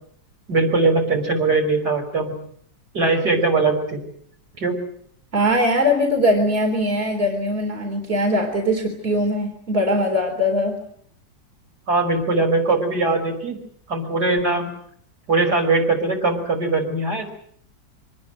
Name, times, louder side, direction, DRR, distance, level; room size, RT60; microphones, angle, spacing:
voice 1, 0.5-2.3 2.9-4.0 4.6-4.7 11.9-13.6 13.9-14.7 15.3-17.3, right 3 dB, 55° right, 3 dB, 6.2 m, -20 dB
voice 2, 5.3-10.8, equal, 30° right, 2 dB, 4.0 m, -21 dB
25.5 x 20.0 x 9.2 m, 0.64 s
omnidirectional pair, 2.1 m